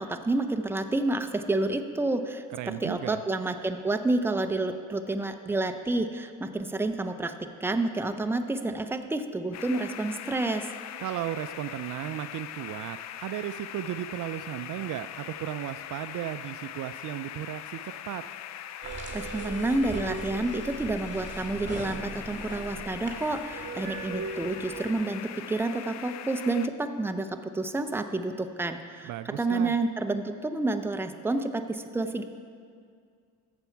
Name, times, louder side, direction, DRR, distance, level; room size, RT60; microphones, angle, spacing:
voice 1, 0.0-10.7 19.1-32.2, right 2 dB, 5° right, 7 dB, 0.6 m, -29 dB
voice 2, 2.5-3.2 11.0-18.2 29.0-29.7, right 13 dB, 55° right, 12 dB, 0.4 m, -35 dB
sound 1, 9.5-26.7, left 11 dB, 50° left, 0.5 m, -41 dB
sound 2, 18.8-24.9, right 3 dB, 30° right, 2.1 m, -38 dB
14.5 x 7.1 x 4.6 m, 2.2 s
supercardioid pair, 80°, 37 cm